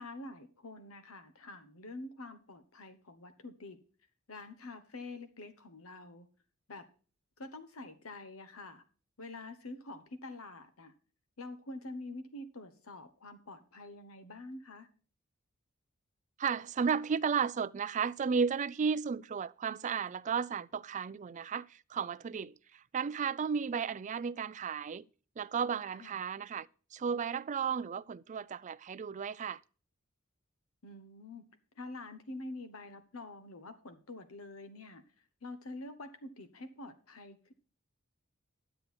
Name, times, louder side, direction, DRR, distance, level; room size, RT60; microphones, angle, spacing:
voice 1, 0.0-3.8 4.3-6.3 6.7-6.8 7.4-8.8 9.2-10.9 11.4-14.9 26.0-26.2 30.8-31.5 31.8-35.0 35.4-37.5, left 2 dB, 80° left, 1.1 m, -46 dB
voice 2, 16.4-25.0 25.4-29.6, right 6 dB, 35° right, 0.4 m, -34 dB
11.0 x 7.7 x 4.3 m
head